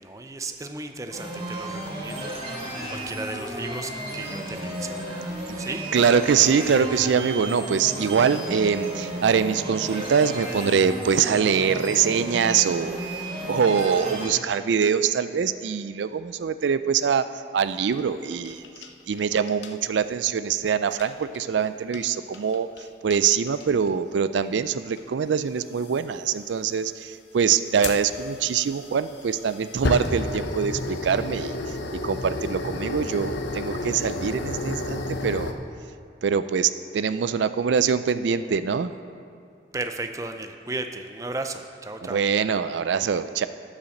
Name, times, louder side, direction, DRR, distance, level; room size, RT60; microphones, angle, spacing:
voice 1, 0.0-5.9 39.7-42.2, right 2 dB, 20° right, 6 dB, 0.5 m, -35 dB
sound 1, 1.1-14.3, right 1 dB, 35° right, 3.0 m, -33 dB
voice 2, 5.9-13.0 13.4-17.3 17.5-18.6 19.1-22.7 23.0-35.5 36.2-38.9 42.0-43.5, right 6 dB, 90° right, 13 dB, 0.4 m, -24 dB
sound 2, 17.6-19.2 19.5-19.7 20.9-21.4 21.9-22.1 22.3-22.8 23.1-23.2 23.5-23.9 25.0-25.1 25.8-26.0 27.8-35.5, left 2 dB, 85° left, 0.8 m, -31 dB
12.5 x 5.7 x 6.5 m, 2.4 s
head